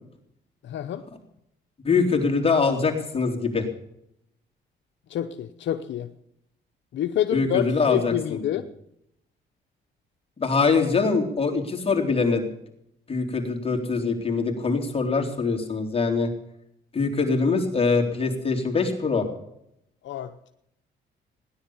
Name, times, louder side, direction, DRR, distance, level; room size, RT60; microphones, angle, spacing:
voice 1, 0.6-1.0 5.1-6.1 6.9-8.6 20.0-20.3, left 11 dB, 70° left, 0.8 m, -27 dB
voice 2, 1.8-3.7 7.3-8.4 10.4-12.4 13.1-16.3 16.9-19.3, left 4 dB, 30° left, 3.6 m, -23 dB
17.0 x 10.5 x 7.1 m
cardioid pair, 90°, 20 cm